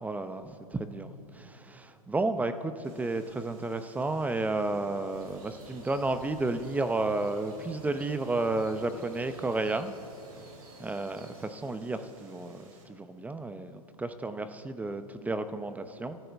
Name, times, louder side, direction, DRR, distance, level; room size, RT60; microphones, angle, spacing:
voice 1, 0.0-9.9 10.8-16.2, right 2 dB, 10° right, 10 dB, 0.7 m, -32 dB
sound 1, 2.8-12.8, right 3 dB, 60° right, 3.7 m, -60 dB
sound 2, 5.1-11.5, right 2 dB, 80° right, 4.2 m, -52 dB
30.0 x 13.5 x 3.5 m, 2.9 s
hypercardioid pair, 115°, 19 cm